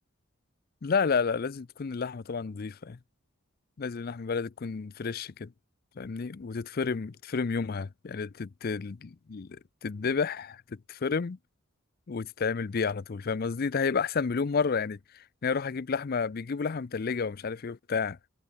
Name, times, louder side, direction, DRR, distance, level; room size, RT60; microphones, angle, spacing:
voice 1, 0.8-3.0 3.8-5.5 6.0-10.6 10.9-11.4 12.1-15.0 15.4-18.2, left 5 dB, 45° left, 0.5 m, -31 dB
head